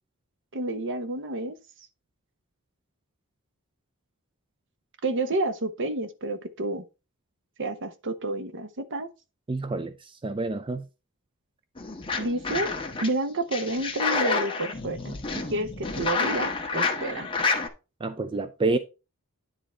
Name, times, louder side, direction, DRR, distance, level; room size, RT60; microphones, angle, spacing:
voice 1, 0.5-1.5 5.0-6.8 7.6-9.1 12.2-12.7 13.0-15.2 15.5-17.3, right 2 dB, 55° right, 1.0 m, -30 dB
voice 2, 9.5-9.9 10.2-10.8 18.0-18.8, right 3 dB, 20° right, 0.5 m, -28 dB
sound 1, 11.8-13.1 13.5-17.7, left 4 dB, 25° left, 1.3 m, -29 dB
10.0 x 3.8 x 4.3 m
head